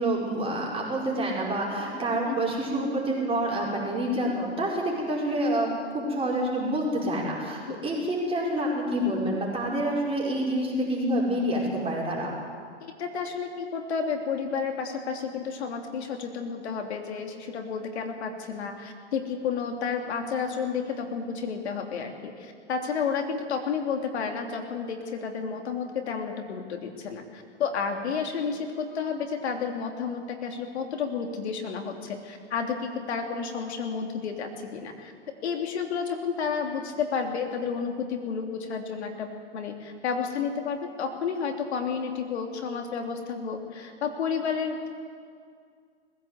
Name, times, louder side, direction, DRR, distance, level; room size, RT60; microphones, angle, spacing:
voice 1, 0.0-12.3, right 1 dB, 15° right, -3 dB, 5.3 m, -27 dB
voice 2, 12.8-35.1 35.4-39.3 39.5-44.9, left 6 dB, 65° left, 4 dB, 3.2 m, -31 dB
20.5 x 15.5 x 8.3 m, 2.2 s
hypercardioid pair, 115°, 35 cm